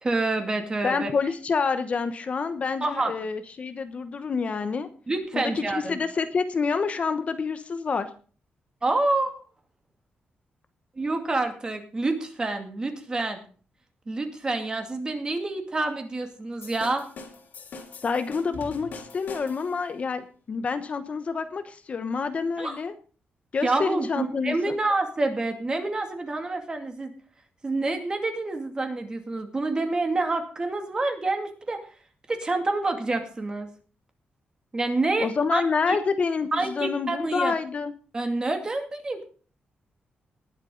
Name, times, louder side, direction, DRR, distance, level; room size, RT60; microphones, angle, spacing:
voice 1, 0.0-1.1 2.8-3.1 5.1-6.0 8.8-9.3 10.9-13.4 14.1-17.1 22.6-22.8 23.6-27.1 27.6-31.9 32.3-33.7 34.7-36.0 36.5-37.5 38.1-39.2, right 2 dB, 25° right, 5 dB, 2.4 m, -27 dB
voice 2, 0.8-4.9 5.3-8.1 18.0-22.9 23.5-24.7 35.2-37.9, left 5 dB, 40° left, 10 dB, 1.0 m, -28 dB
sound 1, 16.6-19.8, left 4 dB, 60° left, 3.0 m, -42 dB
19.5 x 8.1 x 3.9 m, 0.40 s
wide cardioid pair, 155°, 3 cm